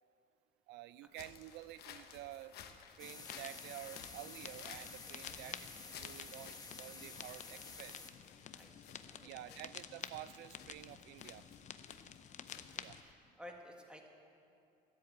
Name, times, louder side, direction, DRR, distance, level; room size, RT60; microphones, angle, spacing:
voice 1, 0.7-2.6 3.0-5.6 6.0-8.0 9.2-11.4 12.8-13.0, right 14 dB, 85° right, 17 dB, 0.4 m, -50 dB
sound 1, 1.1-13.1, left 8 dB, 75° left, 1.1 m, -56 dB
sound 2, 3.0-13.0, left 8 dB, 45° left, 0.6 m, -51 dB
sound 3, 3.0-8.1, left 4 dB, 20° left, 1.2 m, -51 dB
voice 2, 8.5-9.6 12.5-14.1, left 1 dB, 5° right, 2 dB, 1.7 m, -56 dB
13.0 x 8.1 x 8.5 m, 2.6 s
cardioid pair, 110°, 17 cm